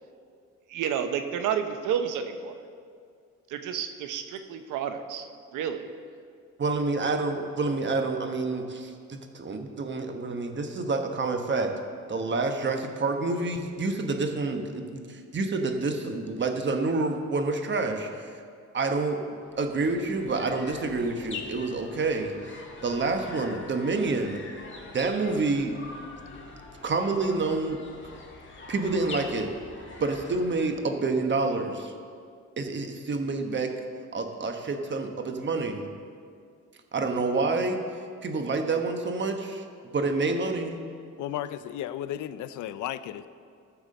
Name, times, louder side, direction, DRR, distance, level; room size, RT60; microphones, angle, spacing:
voice 1, 0.7-2.6 3.5-5.9, right 8 dB, 85° right, 8 dB, 0.8 m, -31 dB
voice 2, 6.6-11.7 12.1-18.3 18.7-19.2 19.6-22.3 22.8-24.4 24.9-25.7 26.8-27.8 28.7-29.5 30.0-31.9 32.6-33.7 34.1-35.9 36.9-37.8 38.2-39.6 39.9-40.8, right 3 dB, 40° right, 5 dB, 1.2 m, -28 dB
sound 1, 19.4-31.0, left 3 dB, 40° left, 1.7 m, -44 dB
voice 3, 41.2-43.3, left 11 dB, 75° left, 13 dB, 0.5 m, -34 dB
14.0 x 4.7 x 6.6 m, 2.2 s
cardioid pair, 90°, 30 cm